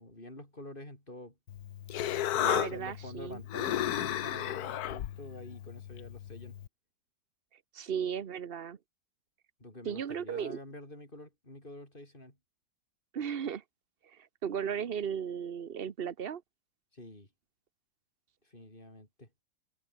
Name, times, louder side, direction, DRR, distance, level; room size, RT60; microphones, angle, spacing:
voice 1, 0.0-1.4 2.3-6.6 9.6-12.4 16.9-17.3 18.4-19.3, left 1 dB, 25° left, 7.2 m, -47 dB
Human voice, 1.5-6.7, left 12 dB, 65° left, 1.2 m, -34 dB
voice 2, 2.4-3.4 7.7-8.8 9.8-10.6 13.1-13.6 14.0-16.4, right 8 dB, 40° right, 0.9 m, -36 dB
omnidirectional pair, 2.0 m